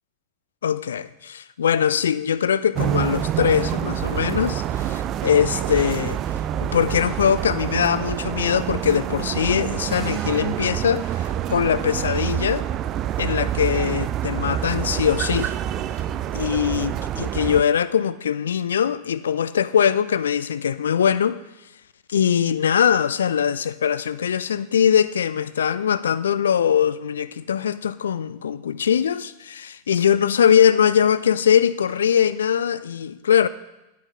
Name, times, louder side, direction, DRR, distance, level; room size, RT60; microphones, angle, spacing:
voice 1, 0.6-6.2 6.6-12.7 13.2-15.5 16.3-21.4 22.1-33.5, left 8 dB, 65° left, 0.3 m, -21 dB
sound 1, 2.8-17.6, right 11 dB, 35° right, 0.3 m, -27 dB
9.7 x 8.5 x 3.9 m
figure-of-eight pair, 90°, 0 cm